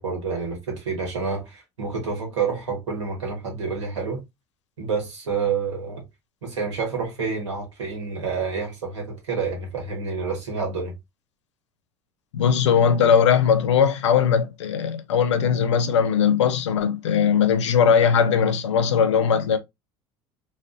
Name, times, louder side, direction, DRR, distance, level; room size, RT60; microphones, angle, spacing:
voice 1, 0.0-4.2 4.8-6.0 6.4-10.9, right 5 dB, 90° right, 1.1 m, -28 dB
voice 2, 12.3-19.6, left 7 dB, 90° left, 0.4 m, -19 dB
2.4 x 2.1 x 2.5 m
hypercardioid pair, 70°, 15 cm